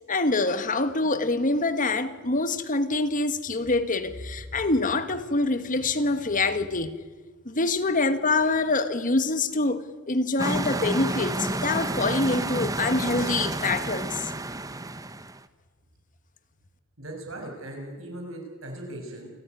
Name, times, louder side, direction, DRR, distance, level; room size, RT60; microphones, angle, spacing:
voice 1, 0.1-6.9 7.4-9.8 10.1-14.3, left 3 dB, 40° left, 1.5 m, -25 dB
sound 1, 10.4-15.4, right 2 dB, 15° right, 0.9 m, -30 dB
voice 2, 17.0-19.3, right 1 dB, 90° right, 6.6 m, -38 dB
28.5 x 14.0 x 9.6 m
head